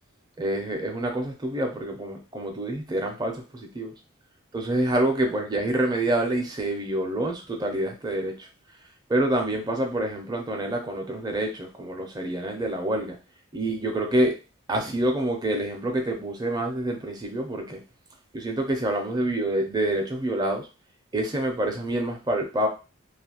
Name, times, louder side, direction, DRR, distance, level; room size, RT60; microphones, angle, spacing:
voice 1, 0.4-3.9 4.5-8.5 9.1-13.2 13.5-14.3 14.7-17.8 18.3-20.7 21.1-22.7, right 1 dB, 20° right, 2 dB, 0.5 m, -27 dB
2.5 x 2.3 x 2.8 m, 0.31 s
head